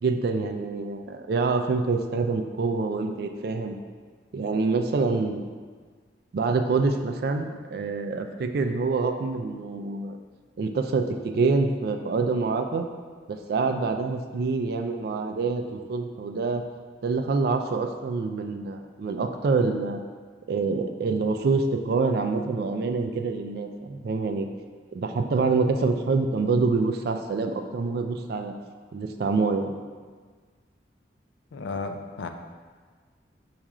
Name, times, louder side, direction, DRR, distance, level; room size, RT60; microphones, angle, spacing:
voice 1, 0.0-3.8 4.3-5.4 6.3-10.2 10.6-12.9 13.3-16.6 17.0-20.0 20.5-24.5 24.9-28.5 28.9-29.7, right 4 dB, 60° right, 6 dB, 0.3 m, -26 dB
voice 2, 31.5-32.3, left 3 dB, 85° left, 6 dB, 0.4 m, -33 dB
4.2 x 2.4 x 4.8 m, 1.6 s
head